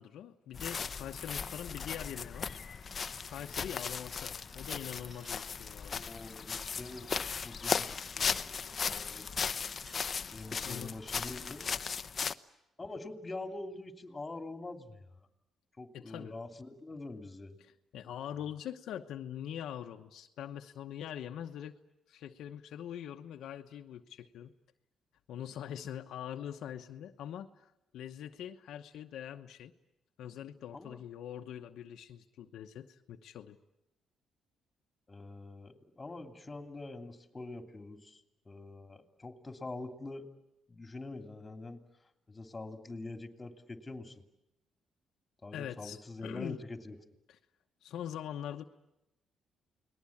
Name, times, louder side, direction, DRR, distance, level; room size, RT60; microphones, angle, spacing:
voice 1, 0.0-2.8 3.3-6.0 10.6-11.0 15.9-16.3 17.6-21.8 22.1-24.5 25.3-29.7 30.2-33.6 45.5-46.6 47.3-47.4 47.8-48.6, left 10 dB, 80° left, 5 dB, 1.0 m, -43 dB
sound 1, 0.5-12.3, left 6 dB, 40° left, 0.8 m, -37 dB
sound 2, 2.1-5.5 6.9-10.0, right 1 dB, 35° right, 7.0 m, -64 dB
voice 2, 5.9-9.6 10.3-11.7 12.8-15.1 15.8-17.5 30.7-31.0 35.1-38.2 38.4-40.3 40.7-41.8 42.3-44.2 45.4-47.0, left 2 dB, 20° left, 5 dB, 2.9 m, -45 dB
29.5 x 20.0 x 8.6 m, 0.92 s
cardioid pair, 90°, 0 cm